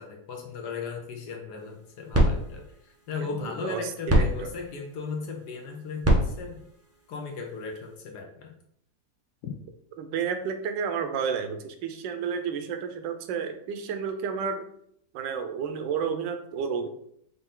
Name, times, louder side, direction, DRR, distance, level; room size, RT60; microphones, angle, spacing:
voice 1, 0.0-6.6 7.1-8.6 9.4-9.5, left 5 dB, 70° left, 2 dB, 1.2 m, -37 dB
sound 1, 1.6-8.0, equal, 20° right, 0.4 m, -29 dB
voice 2, 3.2-4.5 10.0-14.7 15.1-16.9, right 6 dB, 80° right, 7 dB, 1.3 m, -31 dB
5.3 x 2.6 x 3.7 m, 0.71 s
omnidirectional pair, 1.9 m